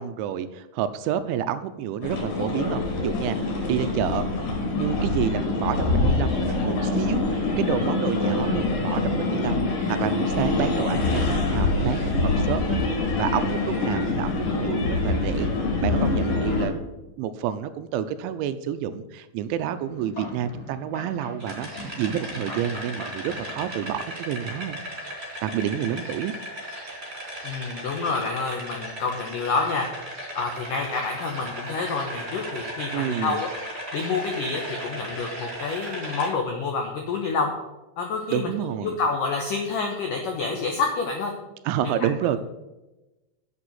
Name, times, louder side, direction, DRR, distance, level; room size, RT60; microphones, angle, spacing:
voice 1, 0.0-3.4 3.7-4.3 4.7-15.5 15.8-16.7 17.2-24.8 25.4-26.3 32.9-33.4 38.3-39.0 41.7-42.4, right 10 dB, 85° right, 11 dB, 2.9 m, -29 dB
sound 1, 2.0-16.7, left 3 dB, 60° left, 4.5 m, -25 dB
sound 2, 19.6-24.3, equal, 20° left, 2.1 m, -41 dB
sound 3, 21.4-36.3, equal, 15° right, 3.1 m, -36 dB
voice 2, 27.4-29.9 30.4-33.5 33.9-37.5 38.0-38.5 38.8-41.3 41.8-42.1, left 4 dB, 80° left, 2 dB, 1.9 m, -28 dB
8.7 x 7.7 x 7.9 m, 1.1 s
omnidirectional pair, 5.6 m